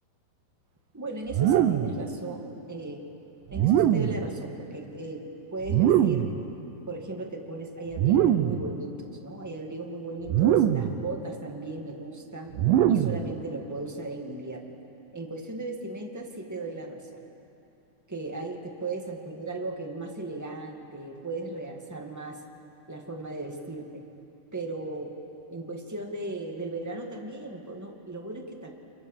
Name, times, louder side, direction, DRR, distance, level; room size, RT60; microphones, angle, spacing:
voice 1, 0.9-3.0 3.5-5.2 5.5-6.3 6.9-12.5 12.9-14.6 15.1-17.2 18.1-22.4 22.9-24.0 24.5-25.1 25.5-28.7, right 2 dB, 10° right, 1 dB, 0.8 m, -36 dB
sound 1, 1.3-2.0 3.5-4.3 5.6-6.4 7.9-8.6 10.3-11.0 12.5-13.3, right 11 dB, 70° right, 2.2 m, -22 dB
28.5 x 27.0 x 7.6 m, 2.9 s
omnidirectional pair, 4.7 m